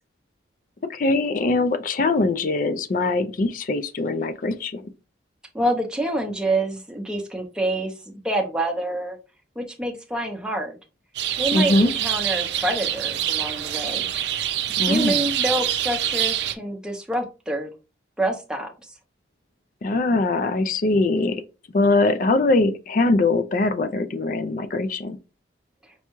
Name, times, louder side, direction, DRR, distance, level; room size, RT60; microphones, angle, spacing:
voice 1, 0.9-4.8 11.5-11.9 14.8-15.2 19.8-21.4 21.7-25.2, left 2 dB, 45° left, 0.4 m, -22 dB
voice 2, 5.5-9.2 9.6-10.7 11.4-14.1 14.8-17.7 18.2-18.9, right 1 dB, 5° right, 0.6 m, -27 dB
sound 1, 11.2-16.5, right 11 dB, 65° right, 0.4 m, -25 dB
5.4 x 2.3 x 3.0 m
head